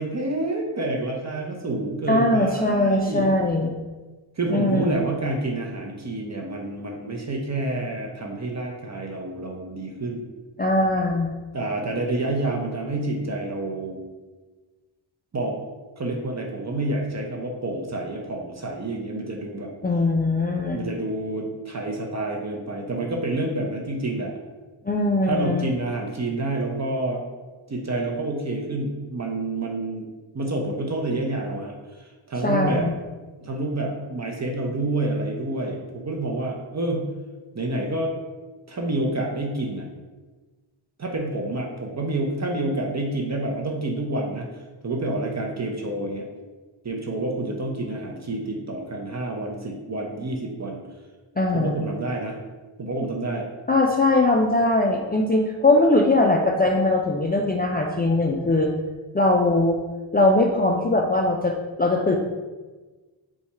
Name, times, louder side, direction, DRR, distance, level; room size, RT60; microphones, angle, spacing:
voice 1, 0.0-3.3 4.4-10.3 11.5-14.0 15.3-15.6 16.0-19.7 20.7-24.3 25.3-27.2 27.7-30.1 30.3-32.9 33.4-37.1 37.5-38.1 38.7-39.9 41.0-44.5 44.8-46.3 46.8-50.8 51.5-52.4 52.8-53.5, right 2 dB, 35° right, 0 dB, 0.7 m, -28 dB
voice 2, 2.1-3.7 4.5-5.0 10.6-11.3 19.8-20.9 24.9-25.7 32.4-33.0 51.4-51.8 53.7-58.7 59.1-59.8 60.1-62.2, left 2 dB, 20° left, 0 dB, 0.3 m, -21 dB
4.2 x 2.4 x 4.2 m, 1.3 s
cardioid pair, 70°, 49 cm